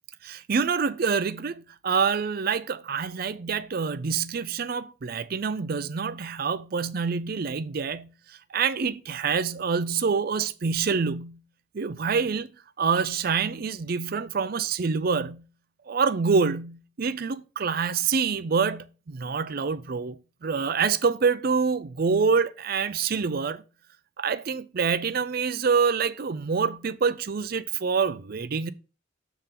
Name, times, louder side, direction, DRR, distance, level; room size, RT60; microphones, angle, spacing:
voice 1, 0.2-8.1 8.5-11.4 11.7-12.5 12.8-15.4 15.9-23.6 24.2-28.7, right 5 dB, 45° right, 0.4 m, -26 dB
6.7 x 3.8 x 5.8 m
head